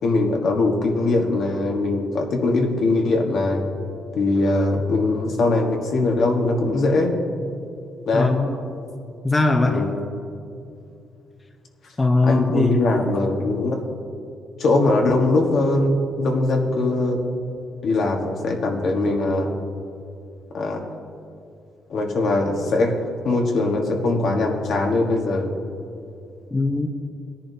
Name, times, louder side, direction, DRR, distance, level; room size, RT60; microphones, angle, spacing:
voice 1, 0.0-3.6 4.1-7.1 8.1-8.4 9.7-10.0 12.2-13.9 14.6-17.4 17.8-19.5 20.5-20.8 21.9-22.9 23.2-25.5, left 2 dB, 65° left, 1 dB, 1.5 m, -21 dB
voice 2, 8.1-8.6 9.2-9.8 12.0-12.7 26.5-26.9, left 3 dB, 20° left, 3 dB, 0.8 m, -20 dB
18.0 x 10.0 x 2.8 m, 2.5 s
cardioid pair, 90°, 0 cm